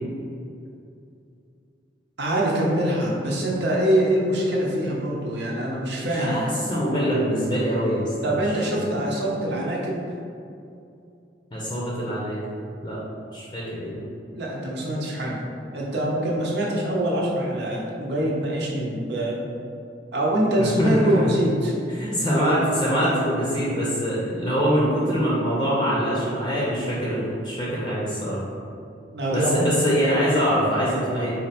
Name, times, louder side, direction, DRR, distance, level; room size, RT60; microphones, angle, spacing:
voice 1, 2.2-6.5 8.2-10.0 14.4-15.3 15.7-19.4 20.1-21.7 29.1-29.8, right 1 dB, 65° right, -3 dB, 0.8 m, -24 dB
voice 2, 6.0-8.9 11.5-12.4 12.8-13.0 13.3-13.9 20.6-21.3 21.9-28.4 29.3-31.3, equal, 25° left, -6 dB, 0.6 m, -24 dB
4.3 x 2.6 x 4.2 m, 2.6 s
head